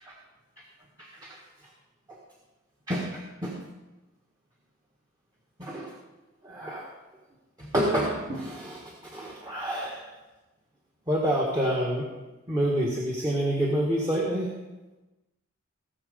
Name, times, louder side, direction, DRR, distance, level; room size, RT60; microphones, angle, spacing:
voice 1, 1.0-1.4 2.1-2.2 2.9-3.5 5.6-5.9 6.4-6.9 7.6-10.1 11.1-12.1 12.5-14.5, equal, 20° right, -3 dB, 1.5 m, -28 dB
17.5 x 6.4 x 5.1 m, 1.1 s
head